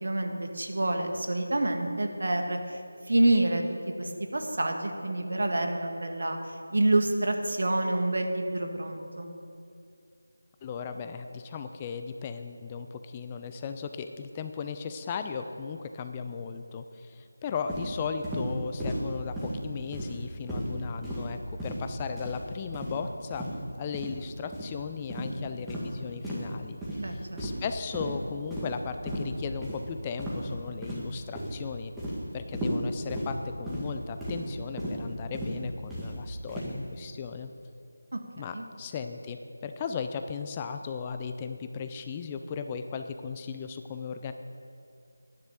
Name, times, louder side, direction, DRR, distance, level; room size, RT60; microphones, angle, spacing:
voice 1, 0.0-2.8 3.1-3.6 4.0-6.4 6.7-9.3 27.0-27.4 38.1-38.2 38.5-38.6, right 2 dB, 60° right, 4 dB, 1.6 m, -27 dB
voice 2, 10.6-23.5 23.8-31.9 32.3-37.5 38.4-44.3, left 6 dB, 20° left, 7 dB, 0.4 m, -36 dB
sound 1, 17.7-17.9 18.2-18.5 18.8-19.0 19.4-19.6 19.9-20.2 20.5-20.7 21.0-21.3 21.6-21.8 22.2-22.4 22.7-23.0 23.3-23.5 23.9-24.1 24.5-24.7 25.1-25.3 25.7-25.9 26.2-26.5 26.8-27.0 27.4-27.7 27.9-28.1 28.5-28.8 29.1-29.3 29.6-29.8 30.2-30.5 30.8-31.1 31.4-31.6 32.0-32.2 32.5-32.8 33.1-33.3 33.7-33.9 34.2-34.4 34.8-35.0 35.3-35.5 35.9-36.1 36.5-36.7, equal, 5° right, 1.9 m, -34 dB
10.5 x 10.0 x 7.0 m, 2.5 s
figure-of-eight pair, 165°, 0 cm